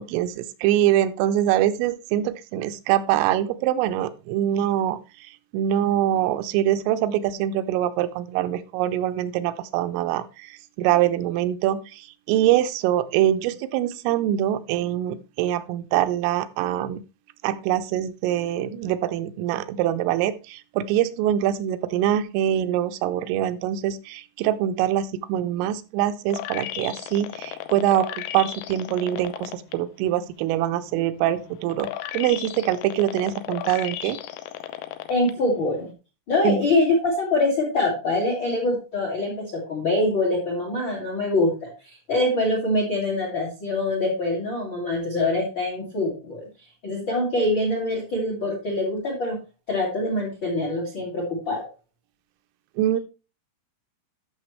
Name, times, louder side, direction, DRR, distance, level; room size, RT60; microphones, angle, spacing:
voice 1, 0.0-17.0 17.4-34.2 36.4-36.6 52.8-53.0, right 12 dB, 85° right, 10 dB, 3.1 m, -24 dB
sound 1, 26.3-29.7 30.2-35.3 35.8-35.9, left 12 dB, 80° left, 2.9 m, -35 dB
voice 2, 35.1-35.9 36.3-46.4 46.8-49.4 49.7-51.7, left 2 dB, 50° left, 1 dB, 1.4 m, -24 dB
12.0 x 6.5 x 3.1 m, 0.31 s
omnidirectional pair, 5.8 m